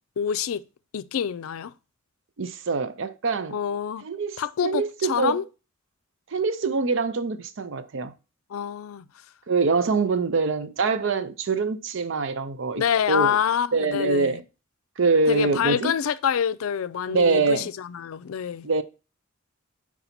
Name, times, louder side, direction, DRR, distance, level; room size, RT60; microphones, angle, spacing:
voice 1, 0.2-0.6 0.9-1.7 3.5-4.0 4.4-5.4 8.5-9.0 12.8-14.4 15.3-18.7, left 8 dB, 90° left, 0.4 m, -26 dB
voice 2, 2.4-3.6 4.0-5.4 6.3-8.1 9.5-13.4 13.7-14.4 15.0-15.9 17.1-17.7 18.6-18.8, right 4 dB, 65° right, 0.5 m, -24 dB
4.7 x 4.0 x 5.8 m
head